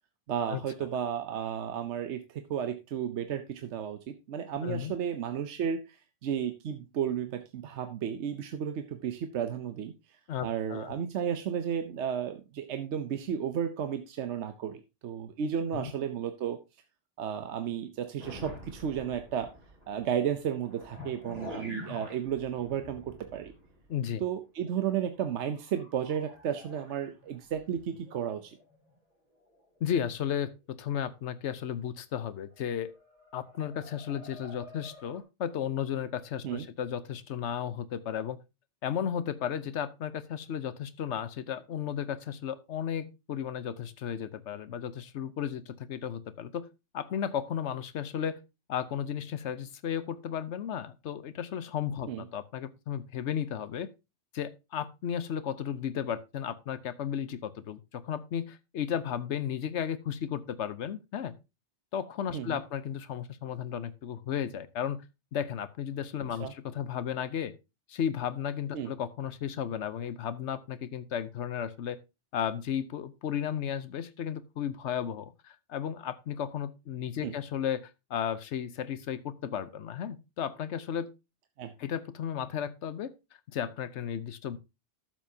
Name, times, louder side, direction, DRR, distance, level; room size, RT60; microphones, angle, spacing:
voice 1, 0.3-16.6 17.2-19.5 19.9-23.5 24.2-28.6 36.4-36.7 52.1-52.2 62.3-62.6 66.4-66.5 68.7-68.9 77.2-77.3 81.6-81.7, right 8 dB, 80° right, 1.0 m, -33 dB
voice 2, 4.6-4.9 10.3-10.9 15.7-15.9 23.9-24.2 29.8-32.9 33.3-38.4 38.8-46.7 46.9-48.4 48.7-53.9 54.3-61.3 61.9-65.0 65.3-67.5 67.9-72.0 72.3-81.1 81.8-83.1 83.5-84.6, left 9 dB, 80° left, 1.1 m, -34 dB
sound 1, 18.2-24.0 24.3-24.4 24.8-24.9 25.2-29.0 29.5-29.8 30.1-30.3 32.5-35.2, left 1 dB, 35° right, 3.0 m, -48 dB
12.0 x 7.3 x 2.8 m
omnidirectional pair, 1.2 m